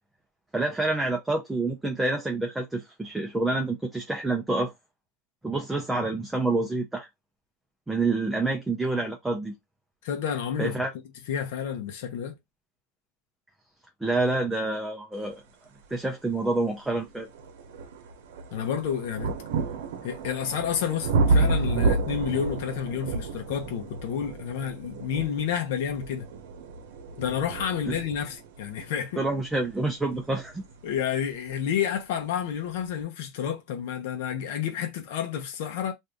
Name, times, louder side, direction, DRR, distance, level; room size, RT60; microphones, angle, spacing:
voice 1, 0.5-4.7 5.4-7.1 7.9-9.5 10.6-10.9 14.0-15.4 15.9-17.3 27.9-28.0 29.2-30.6, right 2 dB, 5° right, 0.6 m, -27 dB
voice 2, 10.0-10.8 11.3-12.4 18.5-19.4 20.0-26.3 27.2-29.2 30.8-35.9, left 8 dB, 70° left, 0.9 m, -30 dB
sound 1, 16.3-16.4 16.9-31.6 32.5-32.6, right 3 dB, 80° right, 0.8 m, -30 dB
2.7 x 2.5 x 3.4 m
supercardioid pair, 155°, 0 cm